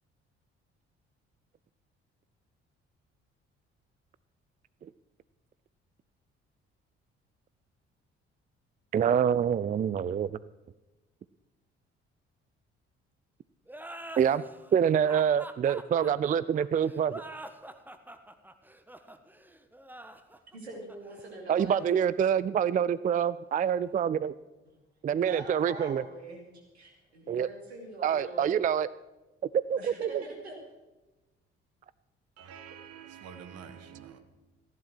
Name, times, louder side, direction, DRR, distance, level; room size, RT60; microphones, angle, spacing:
voice 1, 8.9-10.3 14.2-14.4 14.7-17.2 21.5-24.3 25.0-26.0 27.3-27.5 28.0-28.9 29.7-30.2, right 8 dB, 25° right, 0.4 m, -26 dB
sound 1, 13.7-22.9, right 1 dB, 5° right, 1.4 m, -46 dB
voice 2, 20.5-21.8 25.1-28.5 29.7-30.6, right 2 dB, 80° right, 2.7 m, -43 dB
voice 3, 32.4-34.2, right 7 dB, 50° right, 1.4 m, -47 dB
15.0 x 10.5 x 6.2 m
figure-of-eight pair, 45°, 32 cm